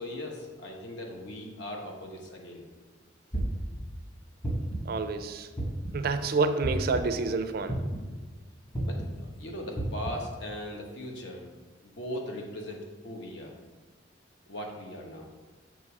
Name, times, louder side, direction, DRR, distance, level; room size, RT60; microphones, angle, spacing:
voice 1, 0.0-2.6 8.8-11.5 11.8-13.6 14.5-15.3, left 1 dB, 70° left, 1 dB, 1.0 m, -39 dB
sound 1, 3.3-3.8 4.4-4.9 5.6-6.0 6.6-7.0 7.7-8.1 8.7-9.1 9.8-10.1, right 1 dB, 30° left, 1.3 m, -31 dB
voice 2, 4.9-5.5 5.9-7.8, right 4 dB, 55° right, 9 dB, 0.4 m, -28 dB
6.6 x 3.1 x 4.7 m, 1.4 s
head